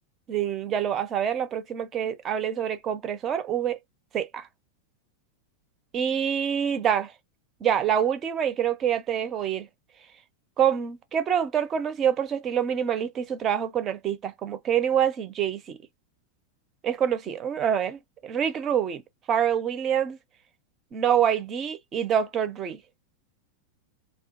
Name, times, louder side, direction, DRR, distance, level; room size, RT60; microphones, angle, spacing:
voice 1, 0.3-3.8 4.1-4.5 5.9-7.1 7.6-9.7 10.6-15.8 16.8-19.0 19.3-20.2 20.9-22.8, right 9 dB, 30° right, 0.4 m, -26 dB
2.2 x 2.2 x 2.5 m
figure-of-eight pair, 90°, 0 cm